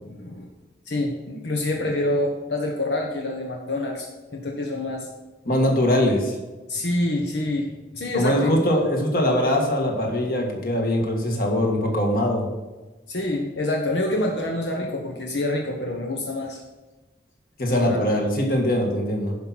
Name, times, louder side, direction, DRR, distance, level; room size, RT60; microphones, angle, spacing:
voice 1, 0.0-0.5 0.9-5.1 6.7-8.6 13.1-16.6 17.7-18.1, left 1 dB, 80° left, 1 dB, 1.2 m, -27 dB
voice 2, 5.5-6.4 8.1-12.5 17.6-19.4, left 1 dB, 55° left, 0 dB, 2.0 m, -22 dB
10.5 x 5.8 x 6.0 m, 1.1 s
head